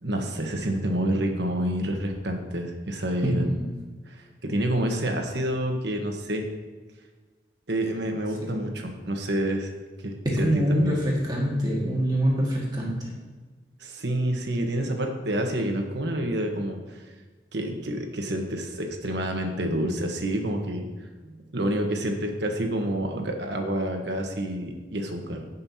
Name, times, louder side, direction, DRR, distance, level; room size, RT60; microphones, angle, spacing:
voice 1, 0.0-3.4 4.1-6.4 7.7-9.7 10.0-11.0 13.8-17.0 17.5-20.9 21.2-25.5, right 1 dB, 80° right, 3 dB, 1.2 m, -28 dB
voice 2, 3.2-3.7 8.4-8.6 10.3-13.2, equal, 25° right, -3 dB, 1.7 m, -25 dB
16.0 x 5.5 x 2.8 m, 1.4 s
head